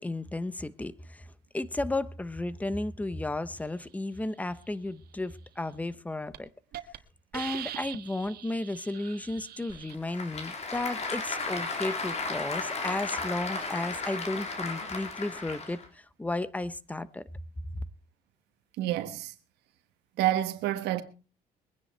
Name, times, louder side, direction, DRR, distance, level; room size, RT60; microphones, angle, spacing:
voice 1, 0.0-6.5 7.3-17.2 17.7-17.8, left 2 dB, 10° left, 0.9 m, -34 dB
Hiss, 5.7-6.0 6.3-6.4 6.7-7.0 7.3-9.9, right 12 dB, 65° right, 1.6 m, -42 dB
Applause / Crowd, 9.7-15.9, left 3 dB, 40° left, 3.6 m, -34 dB
voice 2, 18.8-19.3 20.2-21.0, right 13 dB, 85° right, 1.4 m, -28 dB
22.5 x 9.9 x 4.5 m
cardioid pair, 110°, 17 cm